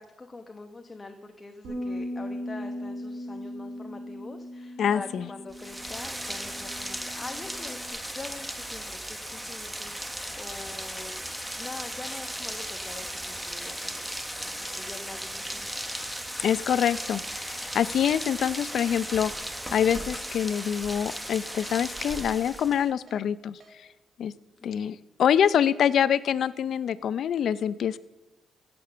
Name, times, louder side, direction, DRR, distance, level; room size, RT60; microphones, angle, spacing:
voice 1, 0.0-11.1 11.6-15.7 24.6-25.0, left 3 dB, 25° left, 5 dB, 1.0 m, -44 dB
Bass guitar, 1.6-7.9, left 1 dB, 85° right, 4.6 m, -38 dB
voice 2, 4.8-5.2 16.4-19.3 19.7-23.6 24.2-24.3 24.6-28.0, left 9 dB, 65° left, 17 dB, 0.5 m, -25 dB
Rain, 5.5-22.9, equal, 5° right, 1.2 m, -36 dB
Keyboard (musical), 17.8-17.9 18.3-18.4 18.8-19.0 19.4-19.5 19.9-20.0 20.4-20.6 21.0-21.1 21.5-21.6 22.0-22.2 22.5-22.7 23.1-23.2 23.6-23.7, right 3 dB, 45° right, 1.8 m, -54 dB
16.0 x 6.9 x 6.8 m, 1.2 s
cardioid pair, 90°, 0 cm